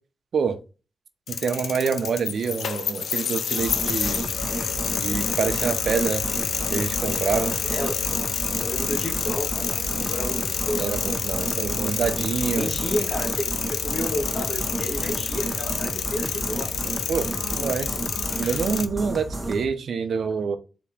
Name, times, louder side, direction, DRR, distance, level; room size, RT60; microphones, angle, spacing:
sound 1, 1.3-18.9, left 7 dB, 80° left, 0.4 m, -29 dB
voice 1, 1.3-4.3 5.0-6.3 6.7-7.5 10.8-12.7 17.1-17.9 18.4-20.6, right 5 dB, 75° right, 9 dB, 0.6 m, -26 dB
sound 2, 3.6-19.7, right 1 dB, 15° right, 0.7 m, -32 dB
voice 2, 7.6-8.0 8.6-10.9 12.5-16.7, left 1 dB, 55° left, 3 dB, 1.6 m, -31 dB
4.1 x 2.9 x 3.6 m, 0.33 s
cardioid pair, 85°, 0 cm